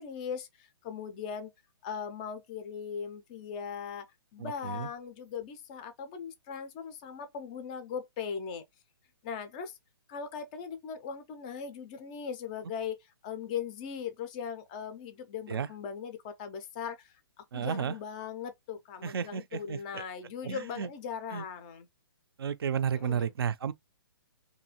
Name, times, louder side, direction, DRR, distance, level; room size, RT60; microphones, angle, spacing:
voice 1, 0.0-1.5 1.8-8.6 9.2-9.8 10.1-13.0 13.2-21.9 23.0-23.3, left 7 dB, 20° left, 0.3 m, -39 dB
voice 2, 4.4-4.9 15.5-15.7 17.5-18.0 19.0-20.0 20.4-20.9 21.3-21.4 22.4-23.7, right 7 dB, 75° right, 0.4 m, -32 dB
2.6 x 2.4 x 2.8 m
hypercardioid pair, 160°, 13 cm